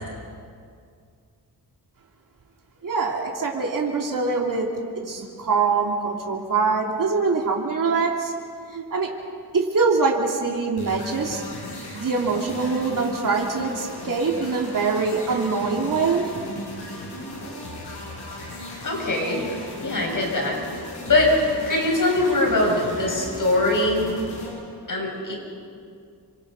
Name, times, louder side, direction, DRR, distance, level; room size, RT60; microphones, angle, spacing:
voice 1, 2.8-4.7 5.1-8.3 8.7-9.1 9.5-11.4 11.9-16.3, right 4 dB, 55° right, -1 dB, 2.9 m, -23 dB
sound 1, 10.8-24.5, left 1 dB, 85° left, 7.7 m, -37 dB
voice 2, 18.8-19.4 19.8-20.6 21.1-21.3 21.6-24.1 24.9-25.3, left 2 dB, 55° left, 0 dB, 6.9 m, -22 dB
28.5 x 25.5 x 5.4 m, 2.3 s
wide cardioid pair, 105°, 39 cm